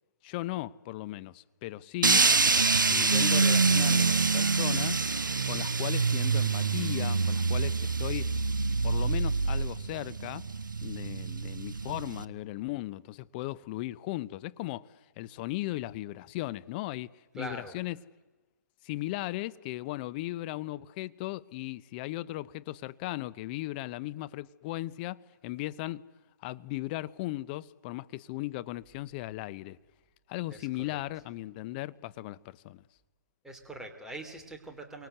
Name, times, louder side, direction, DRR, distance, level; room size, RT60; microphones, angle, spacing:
voice 1, 0.2-2.3 2.9-5.0 5.5-8.3 8.8-10.5 10.8-18.0 18.8-26.0 26.4-29.8 30.3-32.8, left 17 dB, 30° left, 0.8 m, -37 dB
sound 1, 2.0-12.2, right 4 dB, 85° right, 1.1 m, -26 dB
voice 2, 17.4-17.7 30.5-30.6 30.9-31.0 33.4-35.1, right 1 dB, 5° right, 3.0 m, -42 dB
28.0 x 24.5 x 8.0 m
figure-of-eight pair, 135°, 10 cm